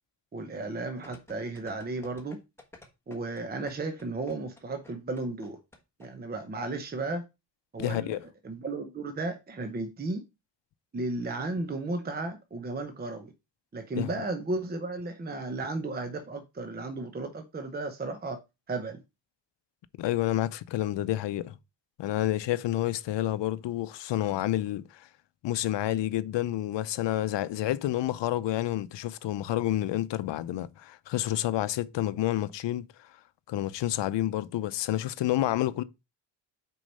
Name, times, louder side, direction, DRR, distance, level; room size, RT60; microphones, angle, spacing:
voice 1, 0.3-2.4 3.1-5.6 6.0-7.2 7.7-10.2 10.9-13.3 13.7-18.4 18.7-19.0, right 2 dB, 20° right, 0.7 m, -34 dB
sound 1, 1.0-6.1 6.3-6.4, left 2 dB, 5° left, 1.2 m, -51 dB
voice 2, 7.8-8.2 14.0-14.1 20.0-21.6 22.0-25.1 25.4-32.8 33.5-35.8, left 14 dB, 75° left, 0.7 m, -29 dB
6.2 x 4.7 x 5.3 m
wide cardioid pair, 180°, 44 cm